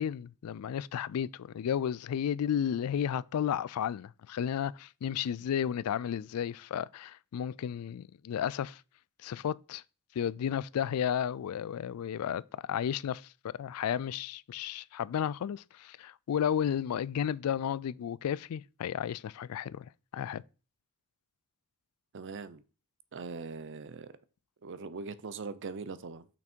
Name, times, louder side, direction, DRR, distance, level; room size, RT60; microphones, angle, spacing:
voice 1, 0.0-8.8 9.2-9.8 10.2-13.3 13.6-20.4, left 9 dB, 75° left, 0.3 m, -33 dB
voice 2, 22.1-22.6 23.1-24.1 24.6-26.3, right 4 dB, 55° right, 0.6 m, -41 dB
6.0 x 6.0 x 4.4 m
head